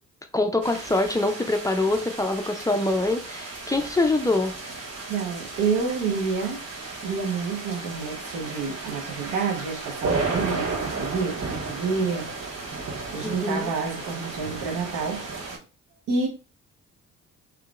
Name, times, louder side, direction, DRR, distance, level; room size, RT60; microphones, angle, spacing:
voice 1, 0.3-4.6 13.2-13.7, left 2 dB, 10° left, 0.4 m, -24 dB
sound 1, 0.6-15.6, right 3 dB, 55° right, 1.7 m, -34 dB
voice 2, 5.1-6.6 7.0-12.3 13.1-15.2 16.1-16.3, right 5 dB, 90° right, 1.1 m, -28 dB
3.7 x 3.1 x 2.4 m
cardioid pair, 90°, 30 cm